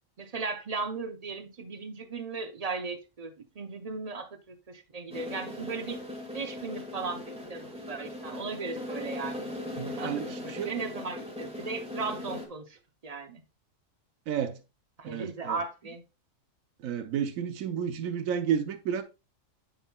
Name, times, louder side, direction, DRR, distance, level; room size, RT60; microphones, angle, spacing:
voice 1, 0.2-6.0 6.3-9.4 10.0-12.8 13.0-13.4 15.0-16.0, right 4 dB, 40° right, 0.6 m, -37 dB
sound 1, 5.1-12.5, left 1 dB, 5° right, 1.2 m, -39 dB
voice 2, 9.8-10.7 14.3-14.6 15.0-15.6 16.8-19.0, right 8 dB, 90° right, 1.1 m, -31 dB
8.7 x 5.4 x 2.2 m
omnidirectional pair, 1.4 m